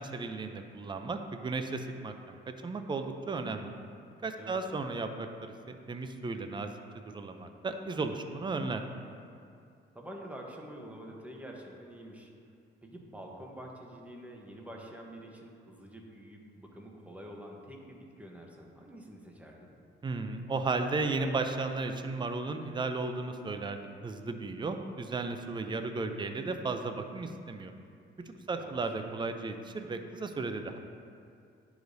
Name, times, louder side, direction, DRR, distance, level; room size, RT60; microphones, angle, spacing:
voice 1, 0.0-2.4 2.6-3.7 4.2-6.7 7.1-8.8 20.0-27.7 28.5-30.8, right 3 dB, 25° right, 7 dB, 0.5 m, -35 dB
voice 2, 9.9-12.3 12.8-19.7 28.4-29.0, right 1 dB, 5° right, 0 dB, 1.0 m, -47 dB
10.5 x 4.9 x 2.7 m, 2.4 s
cardioid pair, 90°, 20 cm